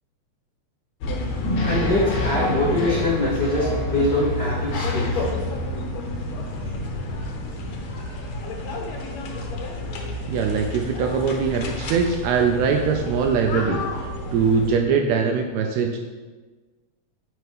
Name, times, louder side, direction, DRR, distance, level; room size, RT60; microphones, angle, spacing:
sound 1, 1.0-14.8, left 2 dB, 70° left, 1.9 m, -29 dB
sound 2, 1.4-5.7, left 1 dB, 50° left, 1.4 m, -33 dB
voice 1, 1.6-5.2, left 1 dB, 85° left, -6 dB, 0.9 m, -23 dB
voice 2, 10.3-16.0, right 6 dB, 85° right, 3 dB, 1.5 m, -22 dB
9.3 x 4.4 x 3.5 m, 1.3 s
omnidirectional pair, 3.6 m